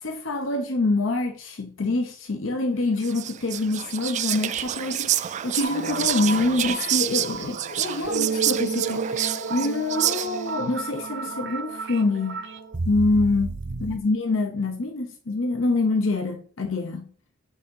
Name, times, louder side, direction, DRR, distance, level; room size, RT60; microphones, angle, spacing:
voice 1, 0.0-12.4 12.8-13.5 13.8-17.1, left 2 dB, 85° left, 0.8 m, -26 dB
Whispering, 3.0-10.6, right 12 dB, 40° right, 0.3 m, -28 dB
sound 1, 5.6-14.0, right 4 dB, 65° right, 0.8 m, -32 dB
8.3 x 3.7 x 5.4 m
head